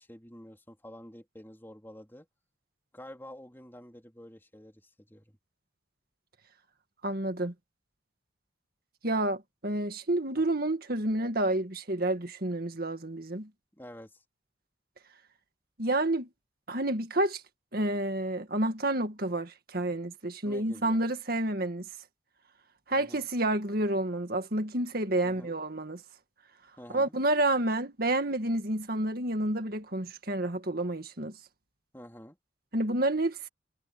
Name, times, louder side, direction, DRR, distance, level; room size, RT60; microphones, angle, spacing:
voice 1, 0.0-2.3 2.9-5.4 10.4-10.5 13.8-14.2 20.4-21.0 22.9-23.3 25.2-25.6 26.8-27.1 31.9-32.4, equal, 10° left, 3.5 m, -49 dB
voice 2, 7.0-7.5 9.0-13.5 15.8-16.3 16.7-17.4 17.7-21.9 22.9-26.0 26.9-31.3 32.7-33.5, right 1 dB, 55° right, 2.0 m, -29 dB
head